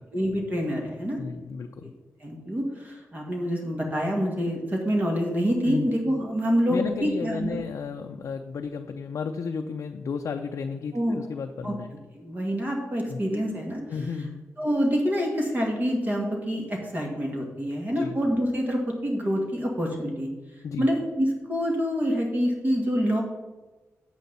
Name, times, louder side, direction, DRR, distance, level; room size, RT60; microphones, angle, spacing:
voice 1, 0.1-1.2 1.8-1.9 2.2-7.6 10.9-11.2 11.6-11.7 12.1-13.8 14.6-20.3 20.8-23.2, equal, 35° right, 0 dB, 1.9 m, -26 dB
voice 2, 1.2-1.9 5.6-5.9 6.7-11.9 13.1-13.2 13.9-14.5 18.0-18.2 20.6-20.9, left 5 dB, 75° left, 4 dB, 0.5 m, -33 dB
8.3 x 8.2 x 4.0 m, 1.2 s
wide cardioid pair, 95°, 5 cm